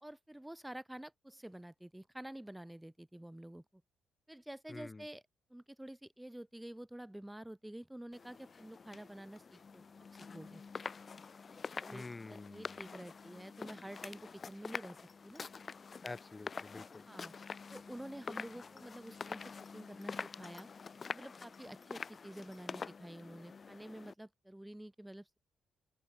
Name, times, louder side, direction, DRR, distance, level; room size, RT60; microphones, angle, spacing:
voice 1, 0.0-3.8 4.3-5.2 5.5-9.8 10.3-10.6 11.8-15.0 15.2-15.5 17.1-17.3 17.7-19.4 19.7-20.7 21.1-25.4, right 1 dB, 5° right, 2.2 m, -49 dB
voice 2, 4.7-5.1 11.9-12.8 16.0-17.1, left 3 dB, 20° left, 1.9 m, -48 dB
sound 1, 8.1-24.1, left 5 dB, 35° left, 0.4 m, -47 dB
open air
cardioid pair, 90°, 0 cm